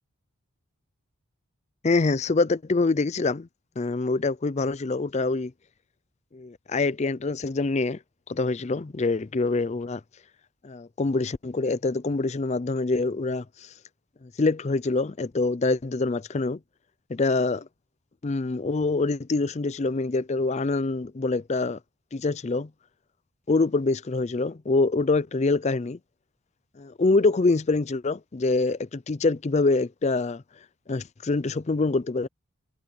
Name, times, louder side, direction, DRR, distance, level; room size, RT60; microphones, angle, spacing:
voice 1, 1.8-3.5 3.8-5.5 6.3-8.0 8.3-10.0 10.6-13.4 14.4-16.6 17.1-17.6 18.2-21.8 22.1-22.7 23.5-26.0 26.8-30.4 30.9-32.3, left 3 dB, 30° left, 0.4 m, -25 dB
head